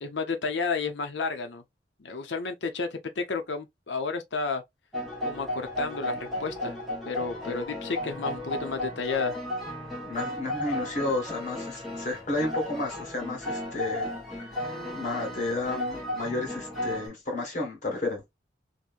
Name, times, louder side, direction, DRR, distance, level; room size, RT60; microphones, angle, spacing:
voice 1, 0.0-1.6 2.0-4.6 5.2-6.8 7.0-9.3, left 4 dB, 75° left, 0.7 m, -31 dB
sound 1, 4.9-17.1, left 1 dB, ahead, 1.3 m, -34 dB
voice 2, 10.0-14.1 14.4-18.2, left 2 dB, 40° left, 1.6 m, -32 dB
3.0 x 2.7 x 2.4 m
head